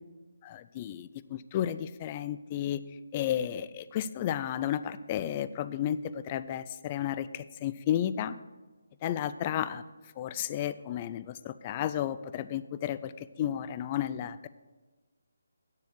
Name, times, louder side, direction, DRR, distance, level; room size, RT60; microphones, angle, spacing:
voice 1, 0.4-2.8 3.1-8.3 9.0-9.8 10.2-14.5, left 10 dB, 25° left, 14 dB, 0.4 m, -32 dB
9.7 x 7.1 x 6.6 m, 1.3 s
figure-of-eight pair, 160°, 0 cm